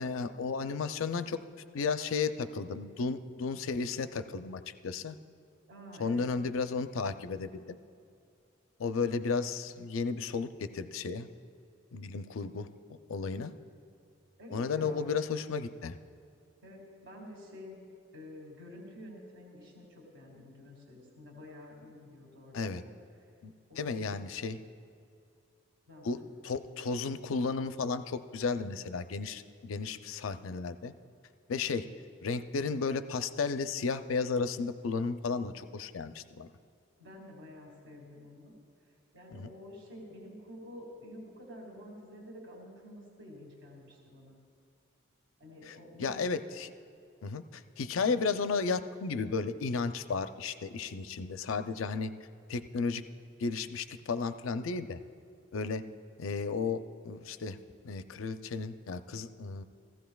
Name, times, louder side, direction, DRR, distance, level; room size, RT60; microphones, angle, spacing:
voice 1, 0.0-1.4 1.7-5.2 6.0-7.8 8.8-11.3 11.9-13.5 14.5-16.0 22.5-22.8 23.4-24.6 26.0-30.9 31.5-31.9 32.2-36.5 39.3-39.5 45.6-46.7 47.2-52.1 52.5-53.0 53.4-55.0 55.5-55.8 56.2-57.6 57.8-59.6, left 4 dB, 85° left, 10 dB, 0.5 m, -34 dB
voice 2, 5.7-6.3 14.4-15.0 16.6-17.9 18.1-22.9 23.7-24.1 25.9-26.3 37.0-38.6 39.1-44.4 45.4-46.2, left 1 dB, 65° right, -1 dB, 1.9 m, -49 dB
16.0 x 15.0 x 2.3 m, 2.4 s
head